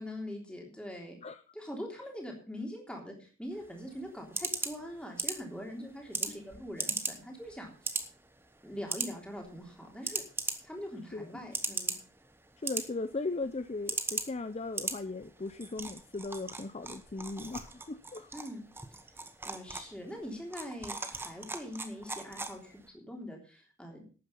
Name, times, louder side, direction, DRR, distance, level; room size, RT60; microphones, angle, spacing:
voice 1, 0.0-1.2 1.5-7.7 8.6-10.2 10.6-12.0 18.3-18.6 19.4-24.1, equal, 5° left, 0 dB, 3.3 m, -43 dB
sound 1, 3.5-22.9, right 3 dB, 10° right, 1.1 m, -40 dB
voice 2, 12.6-18.3, left 3 dB, 30° left, 11 dB, 0.5 m, -37 dB
12.0 x 9.2 x 5.7 m, 0.37 s
head